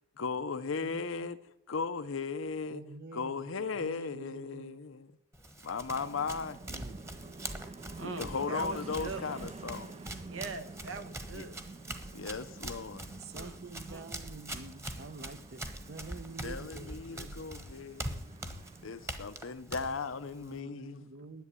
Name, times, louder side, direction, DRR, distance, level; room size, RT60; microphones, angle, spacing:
voice 1, 0.2-1.4 1.7-2.8 3.1-5.1 5.6-6.6 8.0-10.0 11.3-11.5 12.1-13.1 16.4-18.2 18.8-21.0, left 4 dB, 90° left, 0.7 m, -36 dB
voice 2, 0.8-1.4 2.7-4.7 6.3-6.4 6.7-7.2 13.2-17.5 19.8-19.9 20.4-21.4, right 3 dB, 55° right, 0.8 m, -48 dB
Run, 5.3-20.6, right 1 dB, 15° right, 1.3 m, -44 dB
sound 1, 5.8-19.2, right 3 dB, 30° right, 0.4 m, -49 dB
voice 3, 8.0-9.4 10.2-11.6 13.3-13.6 13.9-14.1 21.2-21.3, right 3 dB, 80° right, 1.3 m, -42 dB
10.5 x 8.5 x 9.8 m
head